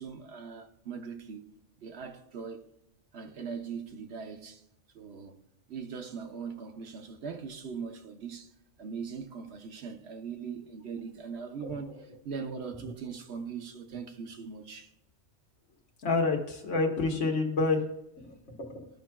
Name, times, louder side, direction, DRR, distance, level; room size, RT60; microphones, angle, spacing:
voice 1, 0.0-1.5 1.8-2.7 3.1-4.6 4.9-5.4 5.7-8.5 8.8-14.9, right 6 dB, 65° right, 1.0 m, -40 dB
voice 2, 16.0-17.9 18.2-18.9, left 3 dB, 85° left, 1.6 m, -29 dB
13.5 x 5.9 x 2.2 m
omnidirectional pair, 1.2 m